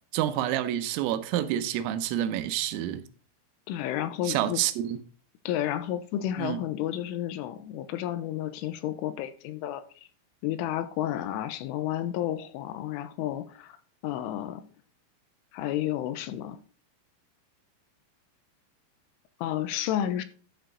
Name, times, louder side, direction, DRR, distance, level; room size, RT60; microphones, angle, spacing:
voice 1, 0.1-3.0 4.3-5.0 6.4-6.6, right 12 dB, 85° right, 3.4 m, -28 dB
voice 2, 3.7-4.6 5.5-9.8 10.4-13.8 14.0-14.7 15.5-16.6 19.4-20.2, left 12 dB, 85° left, 3.2 m, -31 dB
11.5 x 8.0 x 4.0 m
omnidirectional pair, 5.8 m